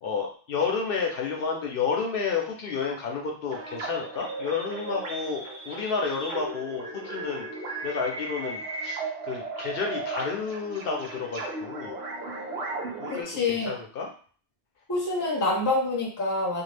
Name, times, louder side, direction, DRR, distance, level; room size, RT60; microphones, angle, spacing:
voice 1, 0.0-7.5 7.8-12.0 13.0-14.1, left 5 dB, 65° left, 0 dB, 0.7 m, -31 dB
sound 1, 3.5-13.2, right 2 dB, 80° right, 1.0 m, -36 dB
voice 2, 13.1-13.7 14.9-16.6, left 2 dB, 20° left, -2 dB, 0.7 m, -26 dB
2.6 x 2.3 x 3.2 m, 0.43 s
omnidirectional pair, 1.0 m